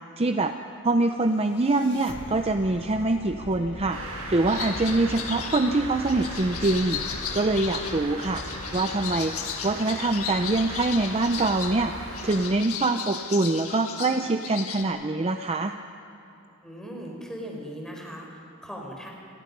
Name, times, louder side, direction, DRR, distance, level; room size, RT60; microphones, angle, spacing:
voice 1, 0.2-0.5 0.8-7.0 7.3-8.4 8.7-9.3 9.6-15.7, right 2 dB, 25° right, 7 dB, 0.6 m, -24 dB
sound 1, 1.1-10.2, left 1 dB, 55° left, 1.5 m, -42 dB
sound 2, 3.9-12.5, right 2 dB, 85° right, 5.3 m, -38 dB
sound 3, 4.5-14.8, left 8 dB, 75° left, 1.7 m, -36 dB
voice 2, 16.6-19.1, equal, 5° left, 0 dB, 4.4 m, -38 dB
29.5 x 22.0 x 5.4 m, 2.9 s
head